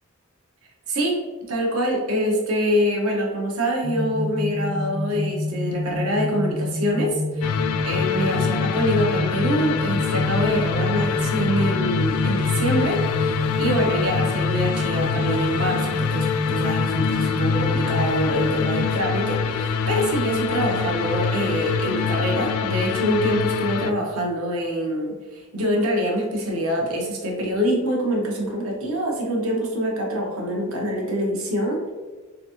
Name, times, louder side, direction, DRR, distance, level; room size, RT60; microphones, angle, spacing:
voice 1, 1.5-31.9, equal, 75° right, 0 dB, 1.0 m, -25 dB
sound 1, 3.8-18.8, left 2 dB, 15° right, 0.3 m, -28 dB
sound 2, 7.4-23.9, left 6 dB, 80° left, 0.3 m, -25 dB
4.0 x 3.4 x 2.9 m, 1.3 s
head